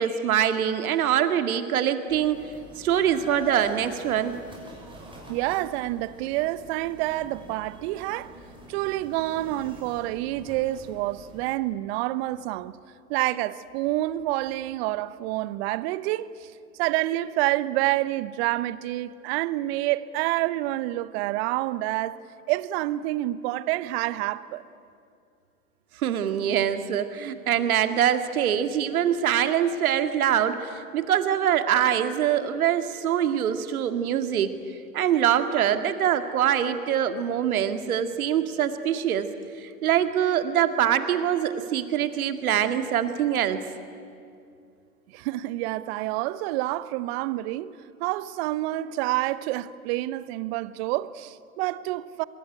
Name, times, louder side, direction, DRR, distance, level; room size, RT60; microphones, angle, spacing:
voice 1, 0.0-2.5 2.8-4.4 26.0-34.6 34.9-39.3 39.6-43.6, right 9 dB, 65° right, 2.1 m, -24 dB
sound 1, 2.1-11.5, right 2 dB, 10° right, 6.4 m, -44 dB
voice 2, 5.3-8.3 8.7-12.8 13.1-16.5 16.8-22.2 22.5-24.6 45.1-47.7 48.0-52.2, right 16 dB, 45° right, 0.9 m, -28 dB
25.0 x 21.5 x 9.9 m
hypercardioid pair, 105°, 45 cm